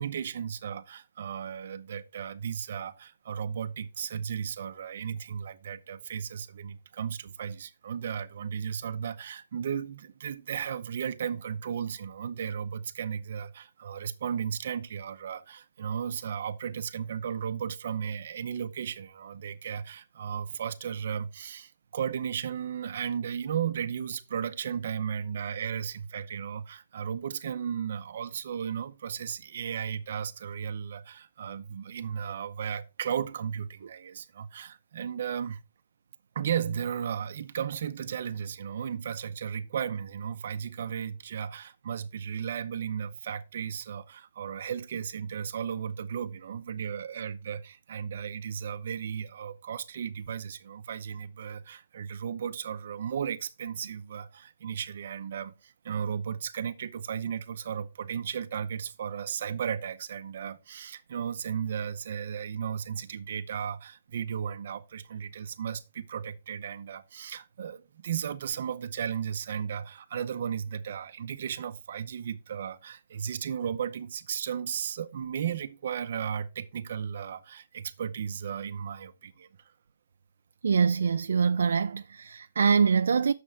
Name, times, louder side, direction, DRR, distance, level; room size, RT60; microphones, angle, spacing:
voice 1, 0.0-35.6 36.3-79.5, right 8 dB, 45° right, 0.7 m, -35 dB
voice 2, 80.6-83.3, right 6 dB, 80° right, 0.3 m, -24 dB
8.8 x 6.8 x 3.4 m
hypercardioid pair, 175°, 0 cm